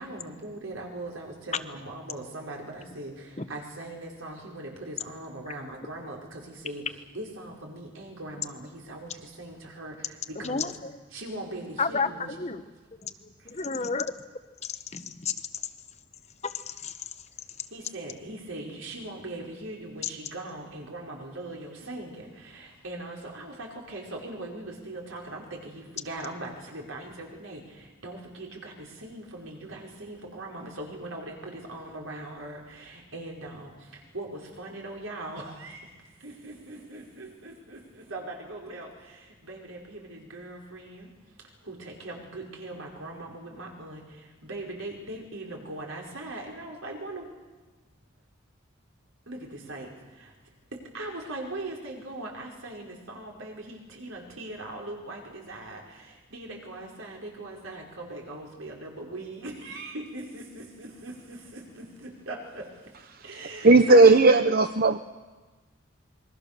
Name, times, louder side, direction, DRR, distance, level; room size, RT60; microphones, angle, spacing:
voice 1, 0.0-10.7 11.1-12.4 13.4-13.5 17.7-35.9 36.2-41.1 41.6-47.3 49.3-50.3 50.7-62.9 63.2-64.0, right 2 dB, 80° right, 5.2 m, -40 dB
voice 2, 10.4-10.9 11.8-12.6 13.0-14.1 14.6-15.3 16.4-17.0, left 4 dB, 30° left, 1.0 m, -31 dB
voice 3, 63.6-65.0, right 3 dB, 45° right, 0.7 m, -16 dB
27.0 x 22.5 x 6.8 m
head